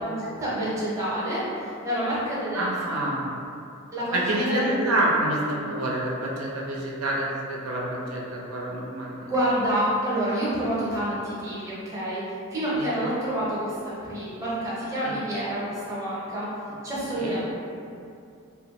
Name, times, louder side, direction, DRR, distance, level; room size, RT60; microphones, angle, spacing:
voice 1, 0.0-3.1 3.9-4.9 9.3-13.8 14.0-16.5 16.8-17.4, right 1 dB, 15° right, -8 dB, 0.6 m, -28 dB
voice 2, 2.5-3.3 4.1-9.2 12.7-12.9 15.0-15.2 17.1-17.4, right 1 dB, 90° right, -3 dB, 0.5 m, -27 dB
2.9 x 2.2 x 2.7 m, 2.5 s
head